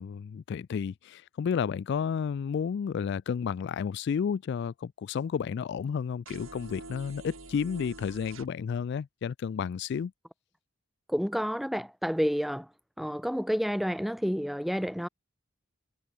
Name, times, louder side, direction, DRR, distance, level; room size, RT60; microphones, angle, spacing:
voice 1, 0.0-10.1, left 7 dB, 55° left, 0.3 m, -31 dB
sound 1, 6.3-8.5, right 2 dB, 90° right, 5.1 m, -46 dB
voice 2, 11.1-12.7 13.0-15.1, equal, ahead, 0.8 m, -29 dB
head